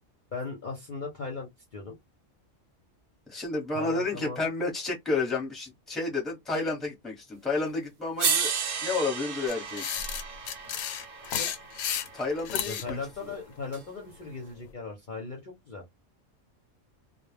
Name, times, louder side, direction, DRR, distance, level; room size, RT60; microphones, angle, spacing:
voice 1, 0.3-2.0 3.7-4.4 11.4-11.5 12.6-15.8, left 4 dB, 45° left, 0.7 m, -38 dB
voice 2, 3.3-8.5 8.8-9.9 12.1-13.0, left 3 dB, ahead, 0.8 m, -31 dB
sound 1, 7.6-7.7 8.2-12.4 13.7-13.8, right 6 dB, 75° right, 1.0 m, -32 dB
sound 2, 9.5-12.9, left 8 dB, 85° left, 1.0 m, -32 dB
2.2 x 2.2 x 3.2 m
omnidirectional pair, 1.3 m